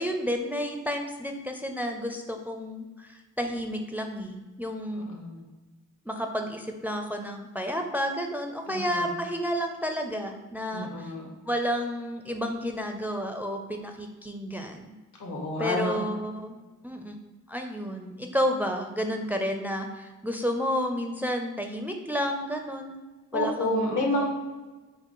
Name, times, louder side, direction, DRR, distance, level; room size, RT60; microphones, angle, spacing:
voice 1, 0.0-5.1 6.1-11.1 11.5-14.9 15.6-16.6 16.8-17.2 17.5-23.0 23.3-24.3, equal, 5° right, 4 dB, 0.4 m, -31 dB
voice 2, 5.1-5.4 8.7-9.1 10.7-11.3 15.2-16.1 23.3-24.3, left 1 dB, 70° left, 0 dB, 1.1 m, -29 dB
5.5 x 2.1 x 3.8 m, 1.2 s
cardioid pair, 90°, 31 cm